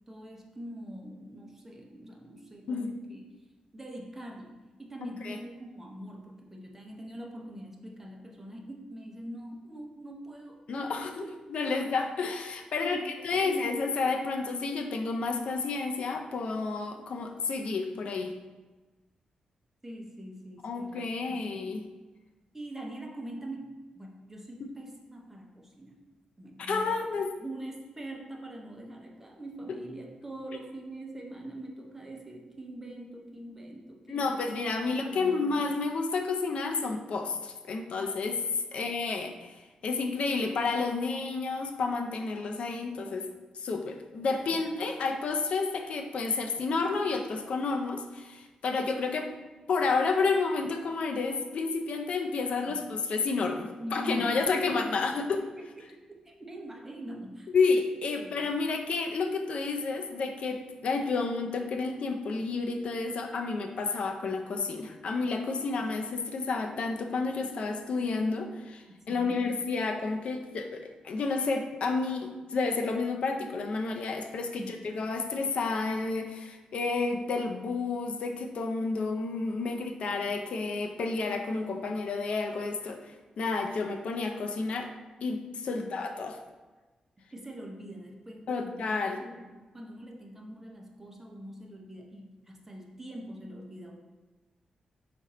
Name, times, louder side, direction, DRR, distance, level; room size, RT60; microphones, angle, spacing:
voice 1, 0.1-3.2 3.7-10.9 11.2-11.3 11.7-11.8 12.7-13.6 19.8-21.6 22.5-26.0 26.4-26.9 27.3-34.5 34.8-35.5 38.7-38.8 44.5-44.6 52.7-52.8 53.8-57.5 58.2-58.4 69.1-69.5 74.5-74.7 85.8-85.9 87.3-94.0, right 1 dB, 15° right, 0 dB, 0.7 m, -43 dB
voice 2, 5.0-5.4 10.7-18.3 20.6-21.8 24.6-24.7 26.6-27.3 34.1-38.4 38.7-43.3 43.5-49.3 49.7-55.4 57.5-84.9 85.2-86.4 88.5-89.2, left 4 dB, 65° left, 4 dB, 0.4 m, -30 dB
5.2 x 2.5 x 4.1 m, 1.2 s
wide cardioid pair, 115°, 2 cm